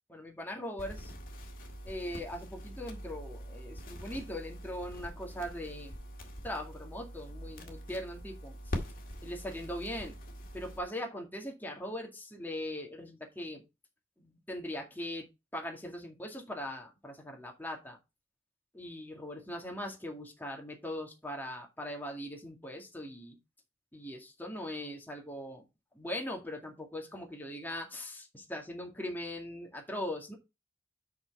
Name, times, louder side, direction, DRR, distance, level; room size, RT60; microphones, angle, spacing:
voice 1, 0.1-1.1 1.8-6.0 6.4-8.8 9.2-10.2 10.5-13.6 14.2-15.3 15.5-18.0 18.7-23.4 23.9-25.7 25.9-30.4, left 1 dB, 10° left, 2.1 m, -40 dB
sound 1, 0.8-10.8, equal, 45° left, 2.0 m, -43 dB
6.1 x 5.9 x 5.5 m
head